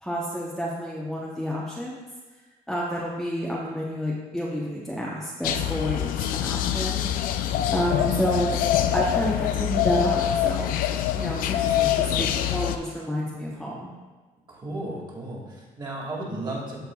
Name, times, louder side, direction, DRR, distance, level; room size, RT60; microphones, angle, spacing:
voice 1, 0.0-2.0 2.7-7.1 7.7-8.6 8.9-10.8 11.1-13.9, equal, 5° left, -5 dB, 0.8 m, -29 dB
sound 1, 5.4-12.8, left 11 dB, 80° left, 0.4 m, -25 dB
voice 2, 14.5-16.8, right 2 dB, 30° right, -3 dB, 2.1 m, -34 dB
13.5 x 4.5 x 2.3 m, 1.3 s
cardioid pair, 125°, 14 cm